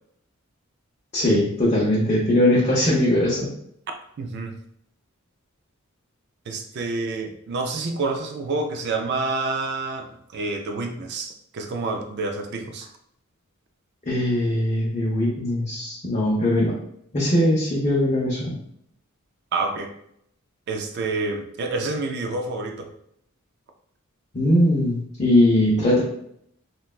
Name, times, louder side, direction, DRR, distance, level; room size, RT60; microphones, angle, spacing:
voice 1, 1.1-3.5 14.1-16.7 17.1-18.6 24.3-26.0, left 1 dB, 35° left, -6 dB, 0.6 m, -20 dB
voice 2, 4.2-4.5 6.5-12.9 19.5-19.9 20.7-22.9, right 3 dB, 50° right, 5 dB, 0.3 m, -28 dB
3.1 x 2.2 x 2.3 m, 0.71 s
head